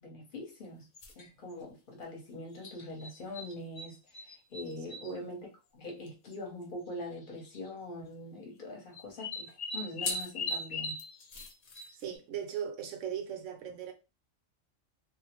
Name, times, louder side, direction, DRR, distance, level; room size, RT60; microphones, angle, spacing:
voice 1, 0.0-0.9 1.2-5.5 5.7-11.0, left 1 dB, 45° left, 1.0 m, -43 dB
sound 1, 1.0-1.3 2.6-5.1 6.1-6.2 6.3-6.4 7.4-7.7 8.9-12.2, left 2 dB, 65° left, 0.3 m, -38 dB
voice 2, 4.8-5.3 11.9-13.9, right 8 dB, 75° right, 0.9 m, -39 dB
2.5 x 2.0 x 2.9 m
omnidirectional pair, 1.3 m